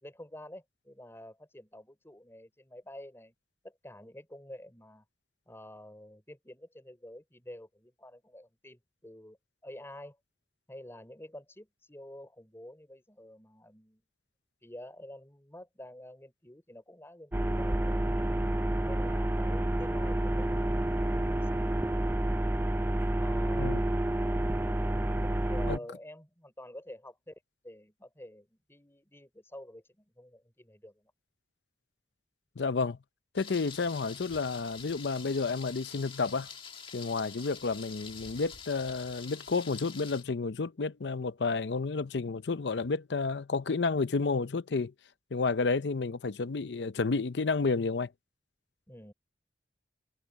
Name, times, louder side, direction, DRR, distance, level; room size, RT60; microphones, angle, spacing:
voice 1, 0.0-3.3 3.6-5.0 5.5-9.4 9.6-10.2 10.7-14.0 14.6-18.4 18.8-21.8 23.2-23.9 25.3-31.1 48.9-49.1, left 1 dB, 15° left, 4.6 m, -49 dB
sound 1, 17.3-25.8, right 1 dB, 10° right, 0.4 m, -29 dB
voice 2, 32.6-33.0 33.3-36.5 36.9-44.9 45.3-48.1, left 4 dB, 70° left, 0.6 m, -31 dB
Thunder, 33.4-40.2, left 6 dB, 30° left, 1.5 m, -47 dB
head